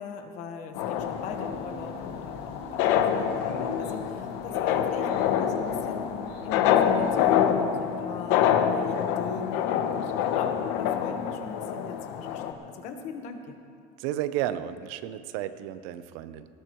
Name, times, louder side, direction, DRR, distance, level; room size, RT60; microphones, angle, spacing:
voice 1, 0.0-13.6, left 5 dB, 50° left, 5 dB, 1.3 m, -40 dB
sound 1, 0.8-12.5, left 9 dB, 75° left, 0.9 m, -26 dB
sound 2, 1.0-7.4, right 5 dB, 40° right, 1.1 m, -46 dB
voice 2, 14.0-16.5, right 12 dB, 85° right, 12 dB, 0.7 m, -32 dB
19.0 x 17.5 x 3.1 m, 2.3 s
cardioid pair, 180°, 16 cm